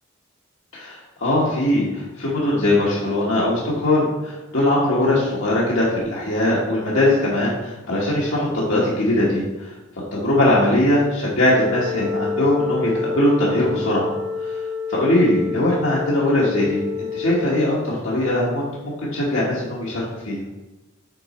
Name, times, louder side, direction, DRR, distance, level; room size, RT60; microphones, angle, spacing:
voice 1, 0.7-9.7 10.1-14.1 14.4-14.6 14.9-20.4, left 1 dB, 80° left, -6 dB, 1.3 m, -21 dB
Wind instrument woodwind instrument, 11.4-17.7, left 5 dB, 55° right, 0.5 m, -28 dB
6.6 x 4.1 x 4.2 m, 1.0 s
head